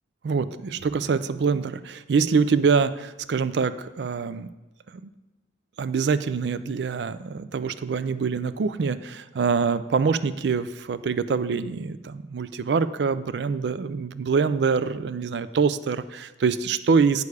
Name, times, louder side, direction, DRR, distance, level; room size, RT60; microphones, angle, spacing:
voice 1, 0.2-4.5 4.9-5.1 5.8-17.2, right 5 dB, 70° right, 14 dB, 0.4 m, -25 dB
8.4 x 6.6 x 4.8 m, 1.1 s
head